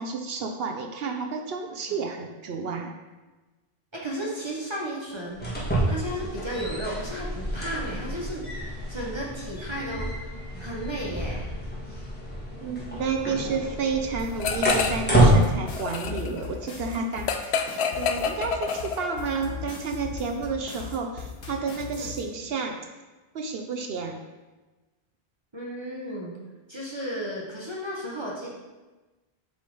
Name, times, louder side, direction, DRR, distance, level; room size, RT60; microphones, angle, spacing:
voice 1, 0.0-2.9 12.6-22.7 23.3-24.2, right 4 dB, 70° right, 4 dB, 0.8 m, -31 dB
voice 2, 3.9-5.5 5.9-10.1 10.6-11.5 21.9-22.1 25.5-26.4 26.7-28.5, equal, 25° right, -4 dB, 1.0 m, -34 dB
sound 1, 5.3-15.4, right 1 dB, 10° left, 1.4 m, -27 dB
sound 2, 14.2-22.2, left 5 dB, 70° left, 1.3 m, -38 dB
sound 3, 14.4-15.1 15.4-19.3, left 6 dB, 85° left, 0.8 m, -28 dB
8.2 x 3.7 x 3.8 m, 1.2 s
omnidirectional pair, 1.1 m